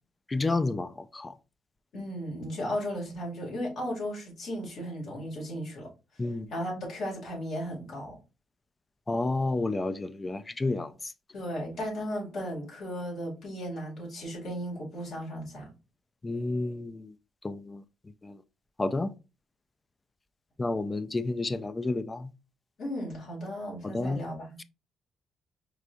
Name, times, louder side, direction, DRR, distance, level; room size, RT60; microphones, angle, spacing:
voice 1, 0.3-1.4 6.2-6.5 9.1-11.1 16.2-17.1 17.4-17.8 18.2-18.4 18.8-19.1 20.6-22.3 23.9-24.2, left 2 dB, 25° left, 0.4 m, -30 dB
voice 2, 1.9-5.9 6.1-6.2 6.5-8.1 11.3-15.7 22.8-24.6, equal, 70° left, 2.5 m, -35 dB
4.8 x 3.3 x 2.6 m
cardioid pair, 90°, 0 cm